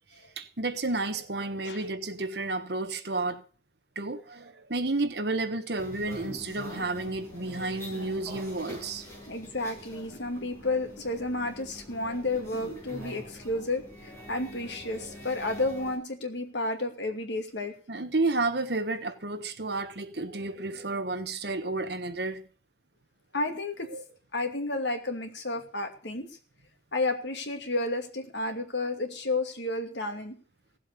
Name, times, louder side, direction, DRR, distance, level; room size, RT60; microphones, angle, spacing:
voice 1, 0.4-3.4 3.9-9.0 12.0-12.2 15.0-15.1 17.9-22.4 23.9-24.0, right 2 dB, 60° right, 1.3 m, -31 dB
sound 1, 5.8-16.0, equal, 15° left, 6.8 m, -45 dB
voice 2, 9.3-17.8 23.3-23.9 24.3-26.4 26.9-30.4, left 2 dB, 70° left, 2.5 m, -31 dB
17.0 x 7.6 x 6.8 m
head